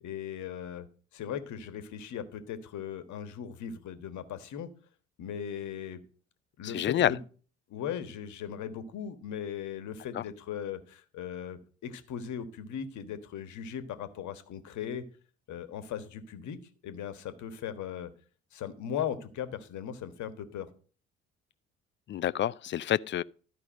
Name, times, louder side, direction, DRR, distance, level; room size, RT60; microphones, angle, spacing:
voice 1, 0.0-0.9 1.1-4.7 5.2-6.0 6.6-7.2 7.7-15.0 15.5-16.6 16.8-18.1 18.5-20.7, left 8 dB, 55° left, 1.5 m, -38 dB
voice 2, 6.6-7.1 10.1-10.2 22.1-23.2, left 11 dB, 35° left, 0.4 m, -28 dB
12.5 x 5.3 x 6.5 m
figure-of-eight pair, 55°, 35 cm